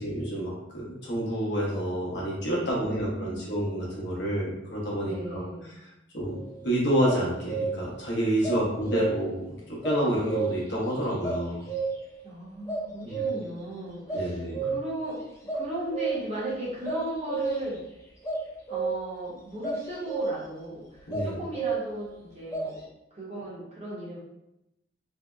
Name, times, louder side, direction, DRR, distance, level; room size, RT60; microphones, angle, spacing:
voice 1, 0.0-5.4 6.1-11.7 13.0-13.2 14.1-14.7 21.1-21.4, equal, 60° left, -5 dB, 0.8 m, -29 dB
voice 2, 2.5-3.5 5.0-5.7 12.2-15.2 15.5-17.8 18.7-22.9 23.1-24.2, right 1 dB, 35° right, -7 dB, 0.7 m, -37 dB
sound 1, 6.3-6.6 7.0-8.0 8.4-9.4 9.8-10.8 11.2-12.2 12.7-13.6 14.1-15.0 15.5-16.4 16.8-17.8 18.2-19.2 19.6-20.5 21.1-22.1 22.5-22.7, right 4 dB, 15° left, 0.4 m, -31 dB
2.6 x 2.1 x 2.3 m, 0.88 s
head